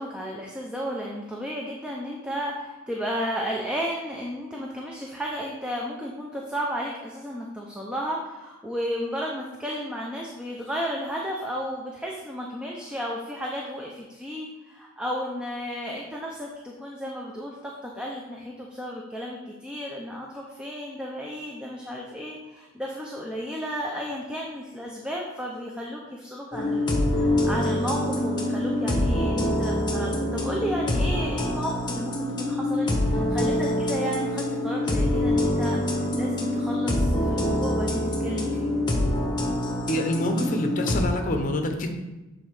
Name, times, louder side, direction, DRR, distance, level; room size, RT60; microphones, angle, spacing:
voice 1, 0.0-38.7, equal, 5° right, -2 dB, 0.6 m, -33 dB
sound 1, 26.5-41.0, left 1 dB, 20° left, 1.1 m, -25 dB
voice 2, 39.9-41.9, left 1 dB, 40° left, 4 dB, 0.8 m, -26 dB
7.6 x 3.9 x 4.7 m, 1.1 s
head